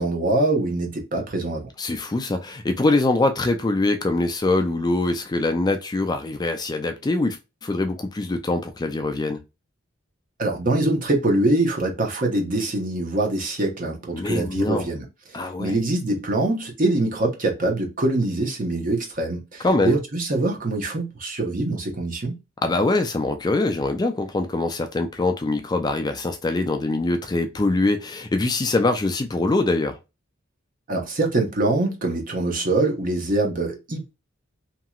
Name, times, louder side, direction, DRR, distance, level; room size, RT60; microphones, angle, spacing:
voice 1, 0.0-1.7 10.4-15.1 15.6-22.3 30.9-34.0, right 2 dB, 45° right, 0.9 m, -24 dB
voice 2, 1.8-7.4 7.6-9.4 14.1-14.9 15.3-15.7 19.6-20.0 22.6-30.0, left 2 dB, 20° left, 0.3 m, -23 dB
2.9 x 2.8 x 2.3 m
head